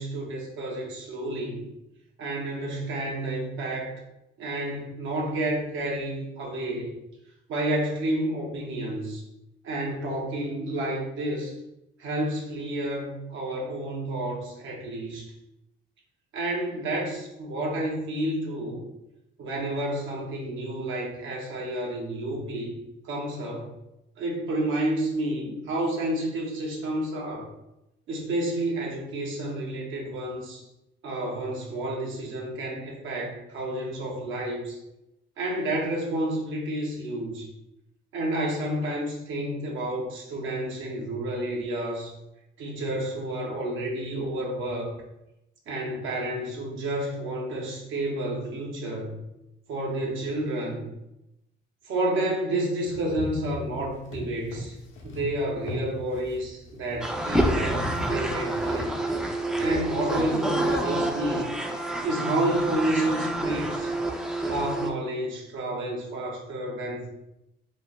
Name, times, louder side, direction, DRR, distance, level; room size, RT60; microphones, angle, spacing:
voice 1, 0.0-1.6 2.2-3.9 4.4-6.9 7.5-9.2 9.6-11.5 12.0-15.3 16.3-18.8 19.4-22.7 23.0-23.7 24.2-27.5 28.1-30.6 31.0-34.8 35.4-37.5 38.1-42.1 42.6-44.9 45.7-49.2 49.7-50.9 51.8-54.8 55.0-58.9 59.6-61.5 62.0-63.9 64.5-67.1, right 1 dB, 80° right, -1 dB, 1.0 m, -30 dB
sound 1, 52.8-58.8, left 1 dB, 80° left, 0.8 m, -37 dB
sound 2, 57.0-64.9, right 1 dB, 5° right, 0.4 m, -28 dB
3.1 x 2.1 x 3.9 m, 0.88 s
cardioid pair, 90°, 20 cm